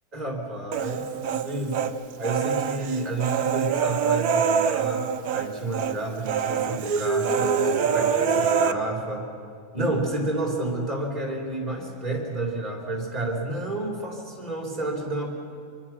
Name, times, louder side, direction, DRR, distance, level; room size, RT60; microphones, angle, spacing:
voice 1, 0.1-1.9 2.2-9.3 9.7-15.3, right 2 dB, 25° right, 0 dB, 4.1 m, -30 dB
Human voice, 0.7-1.9 2.2-5.5 5.7-5.9 6.3-8.7, right 6 dB, 70° right, 1.3 m, -24 dB
25.5 x 23.0 x 6.2 m, 2.4 s
omnidirectional pair, 1.7 m